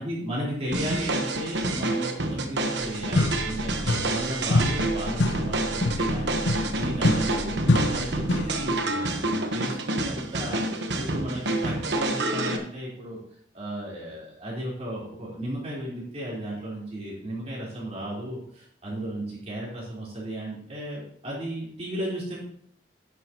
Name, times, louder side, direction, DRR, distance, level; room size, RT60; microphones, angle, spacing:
voice 1, 0.0-13.2 13.5-22.4, right 1 dB, 35° right, -6 dB, 4.1 m, -34 dB
sound 1, 0.7-12.6, right 2 dB, 80° right, 1.2 m, -28 dB
sound 2, 2.8-2.9 3.2-4.3 4.5-8.6, left 1 dB, 85° left, 0.9 m, -26 dB
11.5 x 9.8 x 3.0 m, 0.63 s
head